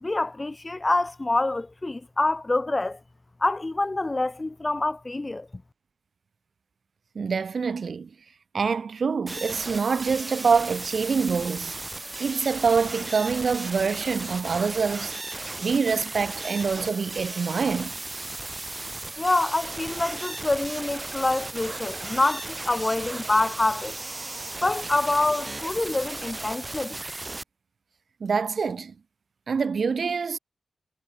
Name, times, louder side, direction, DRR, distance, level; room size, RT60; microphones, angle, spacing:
voice 1, 0.0-3.0 3.4-5.6 19.2-24.0 24.6-27.0, left 2 dB, 20° left, 2.5 m, -26 dB
voice 2, 7.1-8.1 8.5-11.8 12.2-15.1 15.6-18.0 28.2-28.9 29.5-30.4, right 5 dB, 55° right, 2.5 m, -25 dB
sound 1, 9.3-27.4, right 2 dB, 20° right, 3.0 m, -35 dB
wide cardioid pair, 175°, 0 cm